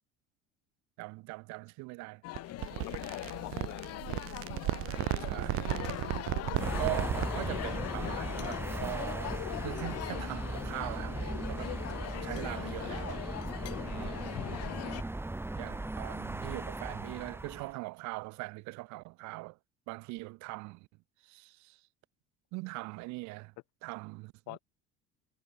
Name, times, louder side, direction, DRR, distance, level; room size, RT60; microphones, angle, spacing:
voice 1, 1.0-2.2 5.2-5.6 6.8-11.7 12.2-13.2 13.9-14.3 15.5-19.6 19.9-20.9 21.2-21.8 22.5-23.5 23.8-24.6, right 24 dB, 75° right, 1.8 m, -41 dB
sound 1, 2.2-15.0, left 16 dB, 55° left, 1.6 m, -40 dB
sound 2, 2.3-7.4, right 19 dB, 50° right, 0.4 m, -35 dB
voice 2, 2.8-4.3 13.8-14.4 24.5-24.6, left 22 dB, 70° left, 7.7 m, -46 dB
sound 3, 6.6-17.7, right 2 dB, 10° right, 3.8 m, -38 dB
cardioid pair, 125°, 29 cm